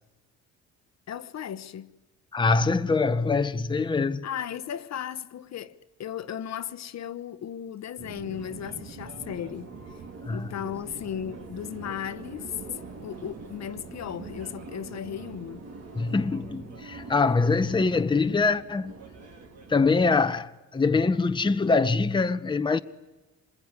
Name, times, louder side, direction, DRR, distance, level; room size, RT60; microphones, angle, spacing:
voice 1, 1.1-1.9 4.2-9.7 10.3-15.6, left 9 dB, 60° left, 1.1 m, -36 dB
voice 2, 2.3-4.2 10.2-10.5 16.0-18.9 19.7-22.8, left 4 dB, 15° left, 0.9 m, -24 dB
Subway metro underground, 8.0-19.9, right 4 dB, 60° right, 3.6 m, -43 dB
26.0 x 21.0 x 9.8 m
cardioid pair, 90°, 30 cm